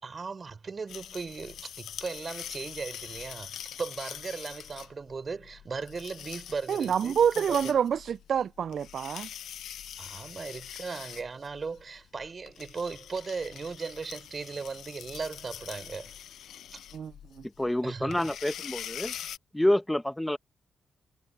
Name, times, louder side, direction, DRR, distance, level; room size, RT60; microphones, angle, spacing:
voice 1, 0.0-7.8 10.0-16.1 16.7-16.8 17.8-18.3, right 4 dB, 45° right, 4.5 m, -37 dB
sound 1, 0.9-19.4, left 10 dB, 70° left, 1.1 m, -44 dB
voice 2, 6.7-9.3 16.9-17.1, right 8 dB, 65° right, 0.4 m, -27 dB
voice 3, 17.6-19.1 19.5-20.4, left 1 dB, 10° left, 1.4 m, -27 dB
hypercardioid pair, 40°, 0 cm